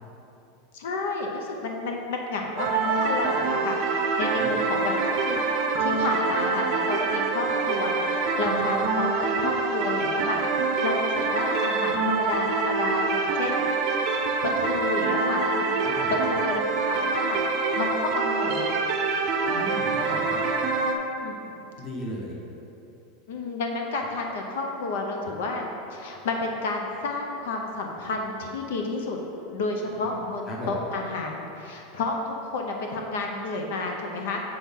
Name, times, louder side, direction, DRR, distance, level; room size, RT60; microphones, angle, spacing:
voice 1, 0.7-3.8 4.2-5.4 5.8-13.6 14.0-15.8 16.3-17.4 17.8-18.7 21.2-21.4 23.3-25.6 25.9-29.2 29.5-34.4, left 3 dB, 75° left, 1 dB, 0.7 m, -31 dB
sound 1, 2.6-20.9, right 4 dB, 40° right, 0.6 m, -25 dB
voice 2, 19.4-20.4 21.8-22.4 30.0-30.2 30.5-30.8, equal, 25° left, -2 dB, 1.0 m, -36 dB
7.0 x 6.0 x 3.6 m, 2.9 s
supercardioid pair, 170°, 0 cm